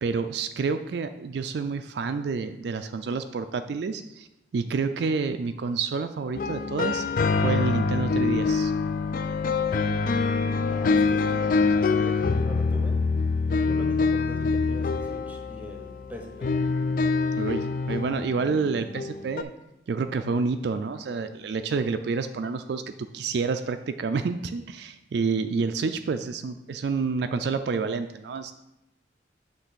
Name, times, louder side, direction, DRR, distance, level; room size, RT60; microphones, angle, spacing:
voice 1, 0.0-4.3 4.5-7.1 7.4-8.7 17.4-19.5 19.9-28.5, right 4 dB, 60° right, 9 dB, 0.3 m, -29 dB
sound 1, 6.3-19.4, left 4 dB, 45° left, 0.3 m, -25 dB
voice 2, 10.7-13.0 13.6-16.6, equal, 10° right, 3 dB, 0.8 m, -42 dB
7.9 x 3.4 x 6.3 m, 0.91 s
head